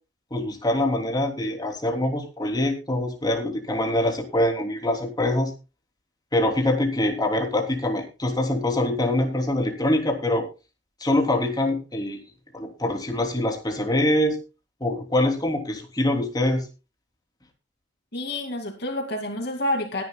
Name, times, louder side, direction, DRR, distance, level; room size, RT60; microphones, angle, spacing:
voice 1, 0.3-5.5 6.3-10.4 11.0-12.2 12.5-14.4 14.8-16.6, left 1 dB, 20° left, 2 dB, 3.2 m, -24 dB
voice 2, 18.1-20.0, left 1 dB, 60° left, 3 dB, 2.5 m, -28 dB
21.0 x 10.5 x 2.3 m, 0.30 s
head